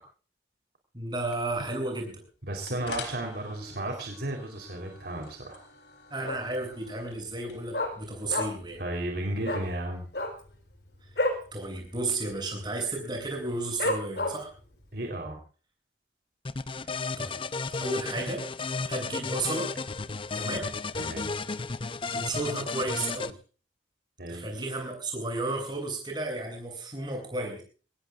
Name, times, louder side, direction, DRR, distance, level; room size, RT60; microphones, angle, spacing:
voice 1, 0.9-2.2 6.1-8.8 11.1-11.2 11.5-14.5 16.8-17.4 17.7-18.4 18.9-19.7 20.3-20.7 22.1-23.4 24.3-27.6, right 2 dB, 25° right, 2 dB, 7.9 m, -33 dB
sound 1, 1.3-9.2, left 4 dB, 85° left, 3.8 m, -47 dB
voice 2, 2.4-5.6 8.8-10.1 14.9-15.4 21.0-21.3 24.2-24.5, right 1 dB, 60° right, 2 dB, 4.0 m, -34 dB
Dog, 6.2-6.7 7.0-7.1 7.3-8.8 9.0-9.2 9.4-9.7 10.1-11.5 11.8-12.0 12.3-12.7 13.1-13.2 13.8-14.6 15.1-15.2, left 1 dB, 65° left, 4.0 m, -30 dB
sound 2, 16.4-23.3, left 4 dB, 30° left, 0.6 m, -33 dB
24.5 x 19.0 x 2.5 m, 0.39 s
head